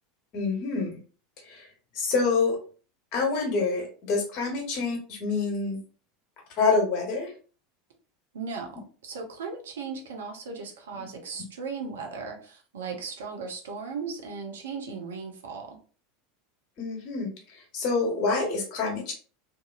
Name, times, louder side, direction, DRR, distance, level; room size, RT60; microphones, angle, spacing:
voice 1, 0.3-1.0 1.4-1.7 1.9-2.6 3.1-5.8 6.6-7.3 16.8-19.1, left 4 dB, 50° left, 1 dB, 1.1 m, -27 dB
voice 2, 8.3-15.8, right 5 dB, 75° right, 2 dB, 0.6 m, -37 dB
2.6 x 2.5 x 2.4 m, 0.39 s
figure-of-eight pair, 80°, 0 cm